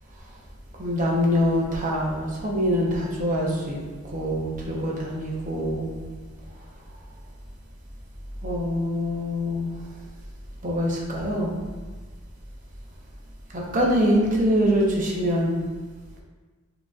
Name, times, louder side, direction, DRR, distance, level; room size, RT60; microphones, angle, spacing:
voice 1, 0.8-3.8 4.1-6.1 8.4-9.7 10.6-11.6 13.5-15.6, equal, 40° right, -3 dB, 0.8 m, -24 dB
6.3 x 2.9 x 2.4 m, 1.3 s
head